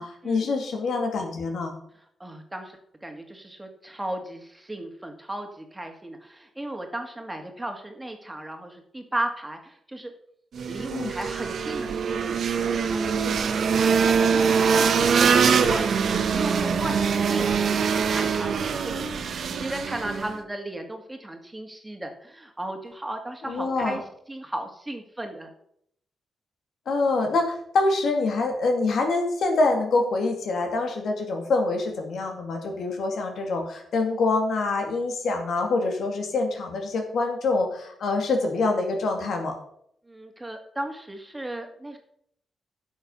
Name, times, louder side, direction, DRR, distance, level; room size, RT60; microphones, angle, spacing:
voice 1, 0.0-1.7 10.9-11.1 23.4-24.0 26.9-39.5, left 3 dB, 75° left, 3 dB, 2.4 m, -25 dB
voice 2, 2.2-10.1 10.7-12.7 12.9-14.4 14.7-19.2 19.4-25.5 40.1-42.0, right 1 dB, 15° right, 4 dB, 2.2 m, -35 dB
sound 1, 10.5-20.4, right 6 dB, 70° right, 1.0 m, -23 dB
11.0 x 6.5 x 5.5 m, 0.69 s
cardioid pair, 65°, 0 cm